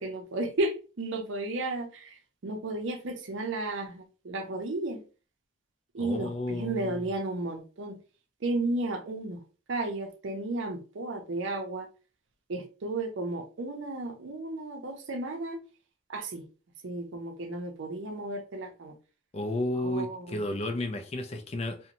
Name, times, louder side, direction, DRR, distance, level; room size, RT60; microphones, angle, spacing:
voice 1, 0.0-2.1 2.4-5.0 5.9-8.0 8.4-9.4 9.7-11.9 12.5-15.6 16.1-16.4 16.8-18.9 19.8-20.4, right 2 dB, 75° right, 0.5 m, -33 dB
voice 2, 6.0-7.0 19.3-21.8, left 1 dB, 30° left, 0.3 m, -32 dB
2.5 x 2.1 x 2.9 m
head